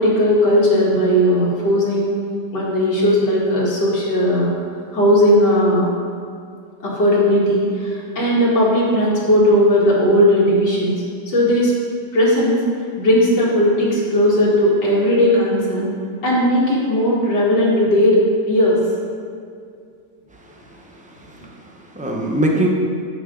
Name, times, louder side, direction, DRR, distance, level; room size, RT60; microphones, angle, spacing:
voice 1, 0.0-2.1 2.5-4.5 4.9-5.9 6.8-11.7 12.1-12.6 13.0-15.9 16.2-18.2 18.5-18.8, equal, 90° left, -6 dB, 2.8 m, -16 dB
voice 2, 20.3-22.7, right 1 dB, 5° right, -1 dB, 0.6 m, -24 dB
13.0 x 6.1 x 3.9 m, 2.3 s
omnidirectional pair, 1.8 m